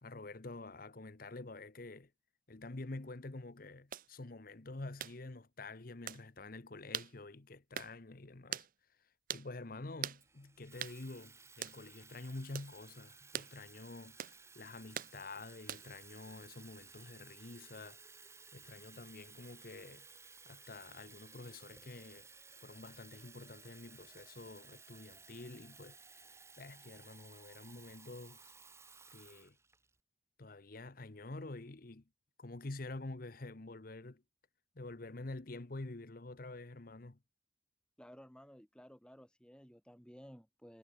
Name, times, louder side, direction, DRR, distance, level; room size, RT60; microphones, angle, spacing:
voice 1, 0.0-2.1 2.5-8.7 9.3-18.0 18.5-20.1 20.4-22.3 22.6-26.2 26.6-28.5 29.1-29.6 30.4-32.0 32.4-34.2 34.7-37.2, left 2 dB, 50° left, 1.0 m, -48 dB
sound 1, 3.9-4.1 5.0-5.2 6.1-6.2 6.9-7.1 7.7-7.9 8.5-8.7 9.3-9.5 10.0-10.2 10.8-11.0 11.6-11.8 12.5-12.7 13.3-13.5 14.2-14.4 14.9-15.1 15.7-16.0, right 10 dB, 50° right, 0.7 m, -41 dB
Water tap faucet / Fill (with liquid), 10.2-30.0, right 4 dB, 15° right, 2.9 m, -58 dB
voice 2, 38.0-40.8, equal, 5° left, 4.5 m, -56 dB
head